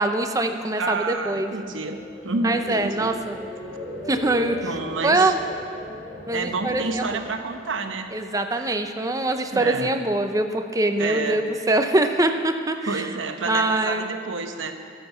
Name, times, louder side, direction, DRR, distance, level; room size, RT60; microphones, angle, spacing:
voice 1, 0.0-1.5 2.4-3.4 4.1-4.6 5.0-5.4 6.3-7.1 8.1-13.1 13.5-14.1, right 2 dB, 20° right, 6 dB, 0.7 m, -23 dB
voice 2, 0.8-2.0 2.2-3.1 4.6-5.3 6.3-8.1 8.5-8.7 9.5-9.9 11.0-11.4 12.9-14.7, right 3 dB, 85° right, 6 dB, 1.1 m, -29 dB
sound 1, 1.2-8.3 8.7-9.1, left 1 dB, ahead, 4.5 m, -39 dB
23.0 x 7.8 x 5.7 m, 2.3 s
head